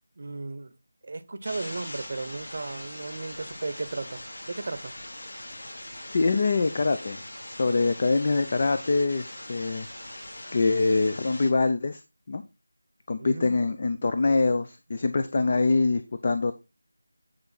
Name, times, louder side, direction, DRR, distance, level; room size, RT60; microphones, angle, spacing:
voice 1, 0.2-0.7 1.0-4.9 13.2-13.6, right 3 dB, 45° right, 0.8 m, -35 dB
sound 1, 1.4-11.5, left 1 dB, 70° left, 3.3 m, -41 dB
voice 2, 6.1-7.2 7.6-9.9 10.5-12.0 12.3-12.4 13.1-16.5, left 3 dB, 35° left, 0.6 m, -24 dB
9.5 x 4.6 x 4.1 m
figure-of-eight pair, 170°, 0 cm